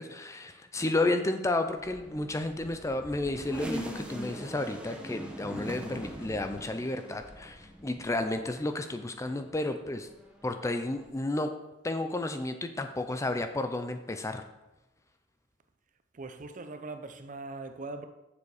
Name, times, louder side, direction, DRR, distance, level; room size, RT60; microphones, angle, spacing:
voice 1, 0.0-10.1 10.4-11.5 11.8-14.4, left 2 dB, 15° left, 0.4 m, -32 dB
sound 1, 1.8-8.7 9.1-11.1, equal, 5° right, 0.9 m, -42 dB
voice 2, 16.1-18.1, right 3 dB, 40° right, 0.6 m, -41 dB
7.0 x 6.9 x 4.8 m
head